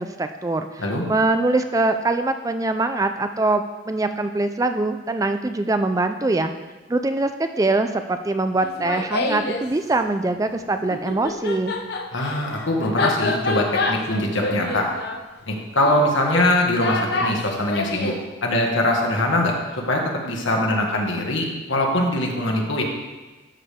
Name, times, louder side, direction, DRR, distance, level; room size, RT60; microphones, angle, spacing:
voice 1, 0.0-6.5 6.9-11.7, right 2 dB, 15° right, 8 dB, 0.3 m, -23 dB
Laughter, 8.6-9.7 10.9-18.2, left 2 dB, 55° left, 0.7 m, -27 dB
voice 2, 12.1-14.9 15.5-18.1 18.4-22.8, left 1 dB, 80° left, 0 dB, 1.7 m, -22 dB
12.0 x 6.8 x 3.6 m, 1.2 s
head